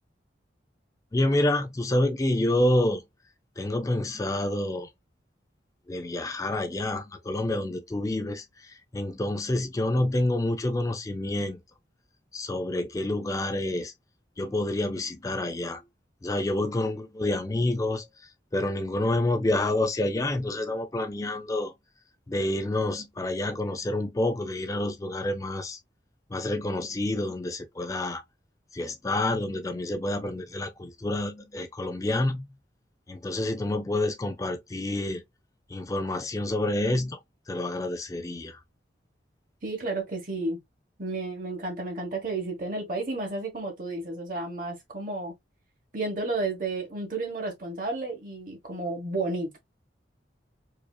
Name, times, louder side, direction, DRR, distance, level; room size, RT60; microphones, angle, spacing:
voice 1, 1.1-3.0 3.6-4.9 5.9-8.4 8.9-11.6 12.3-13.9 14.4-15.8 16.2-18.0 18.5-21.7 22.3-25.8 26.3-28.2 28.7-32.5 33.1-35.2 35.7-37.2 37.5-38.6, left 1 dB, 20° left, 0.4 m, -28 dB
voice 2, 39.6-40.6 41.0-45.3 45.9-49.6, right 2 dB, 45° right, 1.1 m, -32 dB
4.7 x 2.7 x 2.3 m
head